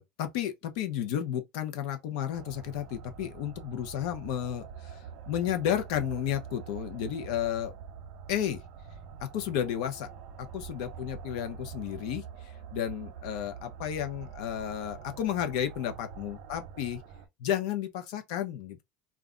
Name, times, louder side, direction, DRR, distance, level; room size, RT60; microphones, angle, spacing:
voice 1, 0.0-7.7 8.3-8.6 9.2-10.1 10.5-17.0 17.4-18.8, left 10 dB, 75° left, 0.8 m, -32 dB
sound 1, 2.3-17.3, right 7 dB, 65° right, 0.7 m, -45 dB
2.4 x 2.1 x 3.7 m
supercardioid pair, 150°, 4 cm